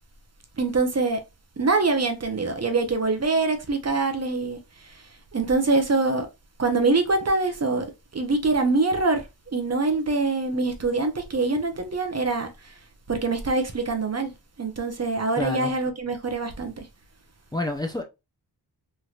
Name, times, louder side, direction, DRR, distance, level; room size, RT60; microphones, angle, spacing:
voice 1, 0.6-1.2 1.6-6.3 6.6-7.9 8.1-9.3 9.5-12.7 13.1-14.3 14.6-16.9, right 3 dB, 40° right, 0.7 m, -24 dB
voice 2, 15.4-15.7 17.5-18.0, left 1 dB, 10° left, 0.5 m, -28 dB
3.2 x 2.8 x 2.4 m
wide cardioid pair, 80°, 41 cm